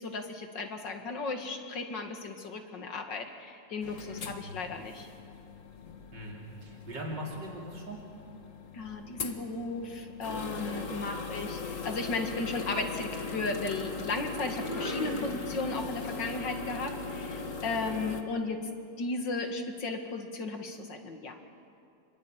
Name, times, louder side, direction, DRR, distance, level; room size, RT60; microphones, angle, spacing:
voice 1, 0.0-5.1 8.7-18.6 19.0-21.3, left 3 dB, 90° left, 4 dB, 2.8 m, -35 dB
sound 1, 3.8-18.2, left 4 dB, 45° left, 1.9 m, -40 dB
voice 2, 6.1-8.0, equal, 80° right, -2 dB, 3.7 m, -40 dB
sound 2, 9.2-9.4 10.8-16.0, left 1 dB, 25° left, 3.4 m, -42 dB
27.5 x 22.5 x 8.9 m, 2.4 s
omnidirectional pair, 1.9 m